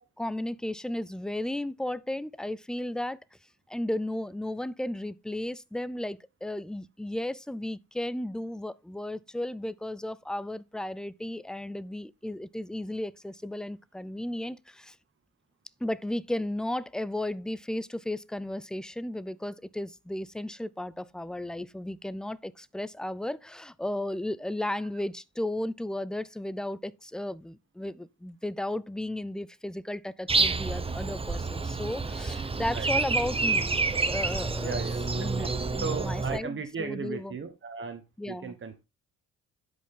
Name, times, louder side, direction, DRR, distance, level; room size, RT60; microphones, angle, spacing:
voice 1, 0.2-3.2 3.7-15.0 15.8-33.7 34.0-37.4 38.2-38.6, left 1 dB, ahead, 0.4 m, -34 dB
Breathing, 30.3-36.4, right 4 dB, 20° right, 0.8 m, -28 dB
voice 2, 34.6-38.8, right 5 dB, 40° right, 1.3 m, -37 dB
10.5 x 5.2 x 3.7 m
cardioid pair, 90°, 30 cm